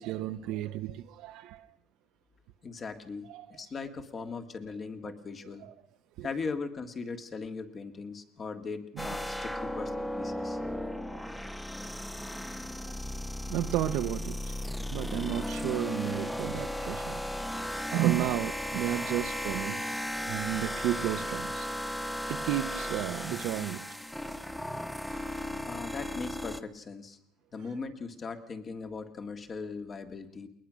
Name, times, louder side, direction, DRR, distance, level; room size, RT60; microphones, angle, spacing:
voice 1, 0.0-1.7 3.3-3.6 5.0-5.1 5.6-5.7 6.2-6.3 8.9-9.1 11.1-11.2 12.5-13.2 13.5-14.6 14.9-17.2 17.5-19.8 20.2-21.7 22.3-24.0 25.1-25.4, right 13 dB, 70° right, 6 dB, 0.8 m, -33 dB
voice 2, 2.6-5.7 6.2-10.6 25.7-27.2 27.5-30.5, left 4 dB, 30° left, 8 dB, 1.8 m, -39 dB
sound 1, 9.0-26.6, left 1 dB, 5° left, 0.8 m, -35 dB
21.0 x 20.0 x 6.3 m, 0.72 s
cardioid pair, 145°, 0 cm